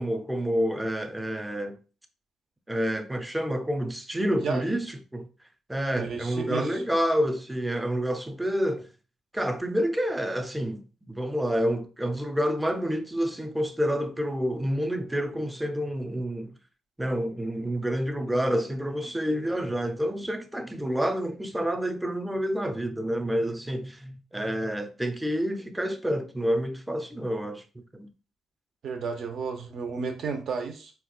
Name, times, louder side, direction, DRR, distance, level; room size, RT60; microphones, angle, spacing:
voice 1, 0.0-1.8 2.7-4.9 5.1-5.3 5.7-8.9 9.3-16.5 17.0-28.1, equal, 10° right, 0.5 m, -28 dB
voice 2, 6.0-6.8 28.8-30.9, right 5 dB, 65° right, 0.7 m, -32 dB
4.3 x 2.3 x 2.4 m
cardioid pair, 90°, 0 cm